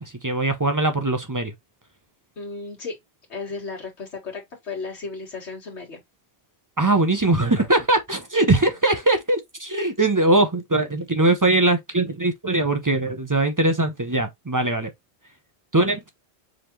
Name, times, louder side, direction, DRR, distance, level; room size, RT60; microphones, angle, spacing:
voice 1, 0.2-1.5 6.8-14.9 15.7-16.2, right 2 dB, 30° right, 0.4 m, -21 dB
voice 2, 2.4-3.0 3.3-6.0, left 4 dB, 85° left, 1.9 m, -34 dB
4.9 x 3.5 x 2.9 m
omnidirectional pair, 1.1 m